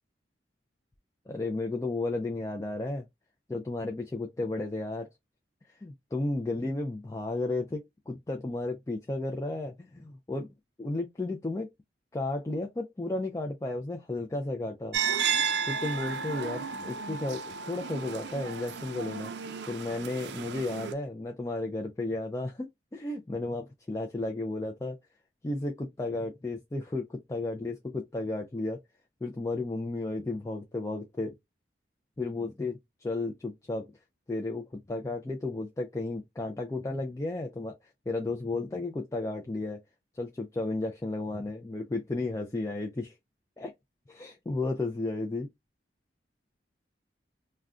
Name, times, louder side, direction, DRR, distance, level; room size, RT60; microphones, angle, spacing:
voice 1, 1.3-3.1 3.5-5.1 5.8-10.5 10.8-11.7 12.1-15.0 15.7-19.3 19.7-25.0 25.4-28.8 29.2-31.3 32.2-33.9 34.3-37.8 38.1-39.8 40.1-43.1 43.6-43.7 44.1-45.5, left 2 dB, 15° left, 0.3 m, -33 dB
sound 1, 14.9-20.9, right 6 dB, 70° right, 0.4 m, -33 dB
2.4 x 2.2 x 3.5 m
head